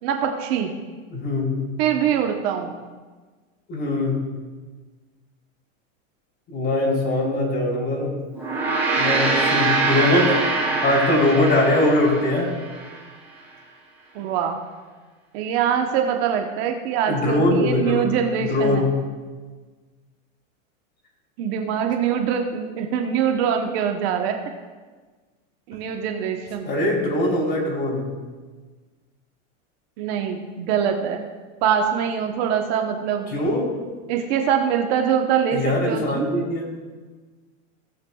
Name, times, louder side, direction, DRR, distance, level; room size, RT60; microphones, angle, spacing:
voice 1, 0.0-0.7 1.8-2.8 14.1-14.6 15.3-18.8 21.4-24.4 25.7-26.7 30.0-31.3 31.6-33.3 34.1-36.3, right 8 dB, 55° right, 4 dB, 1.0 m, -23 dB
voice 2, 1.1-1.6 3.7-4.2 6.5-8.1 9.0-10.4 10.8-12.5 17.1-18.1 18.4-18.9 26.6-28.1 33.3-33.7 35.5-36.7, left 1 dB, 25° left, -3 dB, 3.3 m, -21 dB
Gong, 8.3-12.9, right 3 dB, 5° right, 2.6 m, -23 dB
18.0 x 7.8 x 2.3 m, 1.4 s
supercardioid pair, 145°, 39 cm